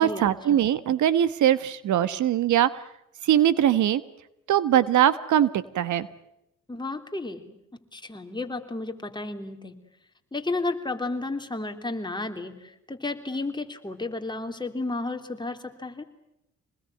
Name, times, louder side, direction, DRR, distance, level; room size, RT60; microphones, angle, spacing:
voice 1, 0.0-2.8 3.2-4.0 4.5-6.1, right 11 dB, 75° right, 15 dB, 1.4 m, -21 dB
voice 2, 6.7-7.6 7.9-9.7 10.3-16.0, left 2 dB, 15° left, 5 dB, 3.3 m, -32 dB
26.5 x 20.5 x 9.3 m, 0.84 s
cardioid pair, 90°, 30 cm